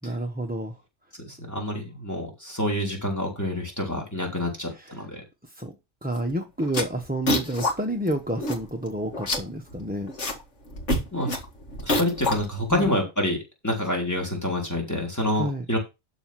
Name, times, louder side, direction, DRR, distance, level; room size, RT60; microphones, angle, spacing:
voice 1, 0.0-0.8 4.7-4.9 5.4-5.8 6.0-10.1 12.7-13.0 15.3-15.6, right 1 dB, 10° right, 1.0 m, -30 dB
voice 2, 1.3-5.2 11.1-11.4 11.8-13.4 13.6-15.8, left 1 dB, 15° left, 3.5 m, -27 dB
sound 1, 6.2-6.3 6.6-7.7 8.1-8.2 8.4-8.9 9.1-10.4 10.7-12.9, left 1 dB, 80° left, 2.3 m, -27 dB
12.0 x 4.2 x 6.0 m
omnidirectional pair, 1.2 m